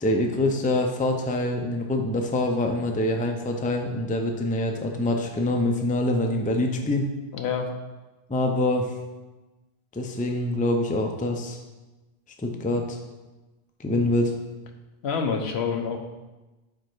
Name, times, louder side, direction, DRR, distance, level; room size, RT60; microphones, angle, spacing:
voice 1, 0.0-7.0 8.3-8.9 9.9-11.6 12.4-13.0 13.8-14.3, left 1 dB, 10° left, 3 dB, 0.4 m, -25 dB
voice 2, 7.3-7.7 15.0-16.0, left 6 dB, 85° left, 4 dB, 1.0 m, -27 dB
5.1 x 4.6 x 4.5 m, 1.1 s
omnidirectional pair, 1.0 m